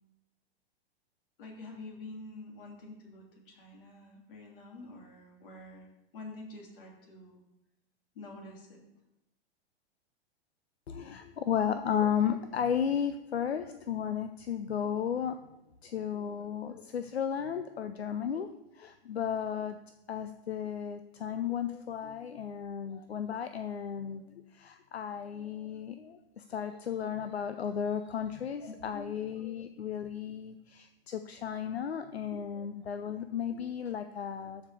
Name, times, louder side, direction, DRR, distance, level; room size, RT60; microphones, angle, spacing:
voice 1, 1.4-5.9 6.1-7.4 8.1-8.8 28.6-29.4 32.3-32.4, left 2 dB, 60° left, 0 dB, 2.6 m, -47 dB
voice 2, 10.9-15.3 15.8-18.5 18.7-19.8 20.1-24.2 24.5-34.6, left 8 dB, 85° left, 9 dB, 0.6 m, -34 dB
13.0 x 5.1 x 3.4 m, 0.90 s
figure-of-eight pair, 105°, 31 cm